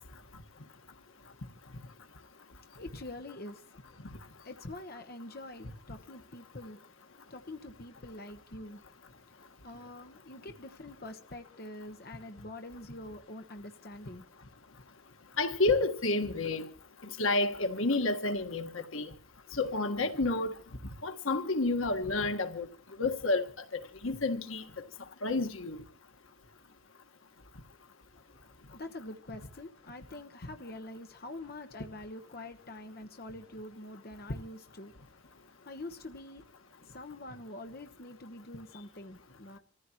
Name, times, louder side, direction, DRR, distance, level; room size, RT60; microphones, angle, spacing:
voice 1, 2.7-3.8 4.1-6.8 7.3-8.8 9.3-14.3 28.1-39.6, left 2 dB, 50° left, 1.1 m, -46 dB
voice 2, 15.4-16.7 17.2-19.1 19.5-20.5 21.0-22.7 23.0-24.6 25.2-25.8, left 2 dB, 90° left, 1.6 m, -30 dB
27.0 x 15.0 x 3.0 m
head